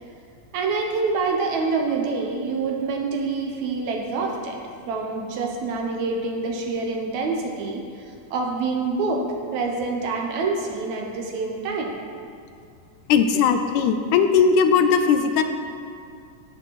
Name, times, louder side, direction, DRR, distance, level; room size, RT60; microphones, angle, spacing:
voice 1, 0.5-4.6 4.9-9.3 9.5-11.9, right 4 dB, 75° right, 1 dB, 1.9 m, -26 dB
voice 2, 13.1-15.4, left 6 dB, 80° left, 7 dB, 2.0 m, -18 dB
15.5 x 7.8 x 3.0 m, 2.4 s
omnidirectional pair, 3.7 m